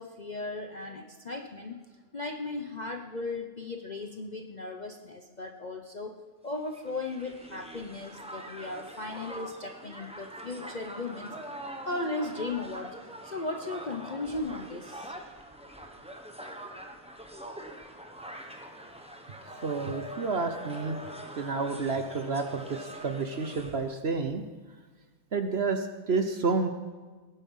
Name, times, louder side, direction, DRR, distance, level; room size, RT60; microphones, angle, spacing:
voice 1, 0.0-1.8 2.1-6.1 6.4-11.5 11.9-13.0 13.2-15.2, left 2 dB, 35° left, 3 dB, 0.7 m, -36 dB
Crowd, 6.5-23.9, right 1 dB, 5° right, 1.0 m, -44 dB
voice 2, 19.6-21.0 21.4-24.4 25.3-26.7, right 4 dB, 50° right, 7 dB, 1.0 m, -30 dB
18.0 x 9.8 x 5.6 m, 1.3 s
omnidirectional pair, 1.7 m